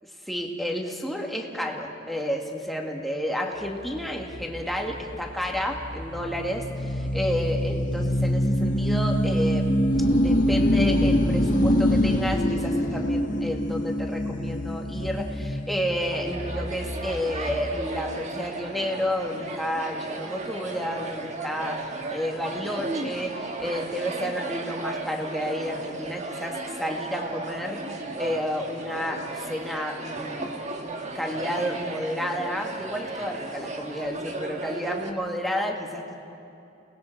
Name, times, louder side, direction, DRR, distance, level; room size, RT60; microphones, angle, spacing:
voice 1, 0.0-9.8 10.1-21.8 22.1-27.8 28.2-36.1, equal, ahead, 0 dB, 1.8 m, -31 dB
sound 1, 3.6-17.8, equal, 40° left, 1.9 m, -25 dB
sound 2, 16.0-35.1, right 2 dB, 35° right, 1.5 m, -35 dB
30.0 x 19.5 x 4.5 m, 2.9 s
head